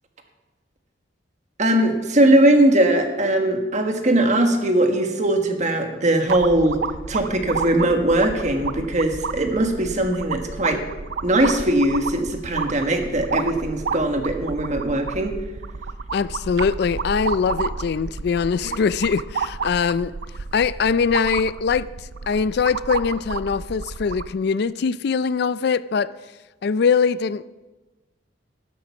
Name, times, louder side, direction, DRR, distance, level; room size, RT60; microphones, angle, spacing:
voice 1, 1.6-6.8 7.1-10.9 11.2-15.4, right 1 dB, 40° right, 1.5 m, -20 dB
sound 1, 6.3-24.3, right 5 dB, 65° right, 0.5 m, -31 dB
voice 2, 16.1-20.1 20.5-21.9 22.3-26.1 26.6-27.4, left 5 dB, 60° left, 0.4 m, -22 dB
12.0 x 11.5 x 6.0 m
head